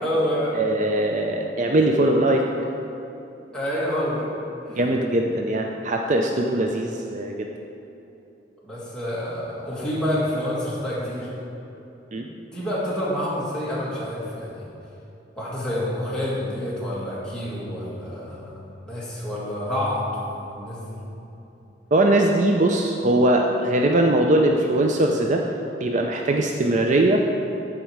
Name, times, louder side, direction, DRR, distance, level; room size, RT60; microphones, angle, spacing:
voice 1, 0.0-0.6 3.5-4.3 4.6-4.8 8.6-11.3 12.1-12.2 12.5-14.7 15.4-21.0, left 1 dB, 5° left, -8 dB, 2.1 m, -28 dB
voice 2, 0.5-2.4 4.8-7.5 12.1-12.3 21.9-25.4 25.8-27.2, right 1 dB, 40° right, 2 dB, 0.5 m, -21 dB
13.5 x 5.1 x 4.6 m, 2.9 s
head